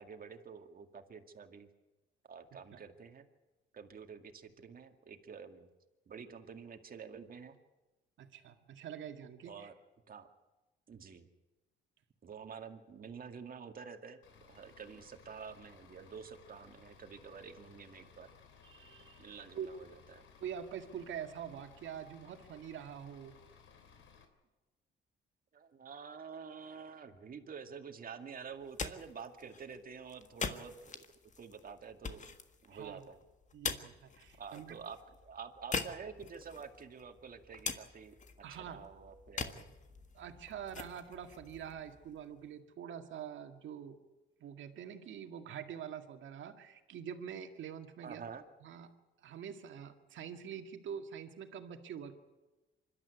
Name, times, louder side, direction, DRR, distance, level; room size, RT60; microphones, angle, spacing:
voice 1, 0.0-1.7 2.3-3.3 3.7-5.7 6.1-7.6 9.5-9.7 10.1-10.3 10.9-11.3 12.2-14.2 14.5-18.3 19.2-20.2 25.5-31.0 31.4-32.3 32.6-33.2 34.4-35.0 35.2-38.1 38.5-39.7 48.0-48.4, right 6 dB, 45° right, 6 dB, 2.1 m, -48 dB
voice 2, 8.2-9.7 18.6-19.2 19.5-19.7 20.4-23.3 32.7-33.0 33.5-34.8 38.4-38.9 39.6-39.7 40.1-44.0 44.4-48.3 48.6-48.9 49.2-52.1, right 8 dB, 75° right, 6 dB, 2.0 m, -45 dB
Bus / Idling, 14.2-24.2, left 6 dB, 75° left, 3.2 m, -60 dB
sound 1, 28.5-42.5, left 5 dB, 40° left, 1.6 m, -44 dB
25.5 x 12.5 x 9.5 m, 1.1 s
cardioid pair, 90°, 20 cm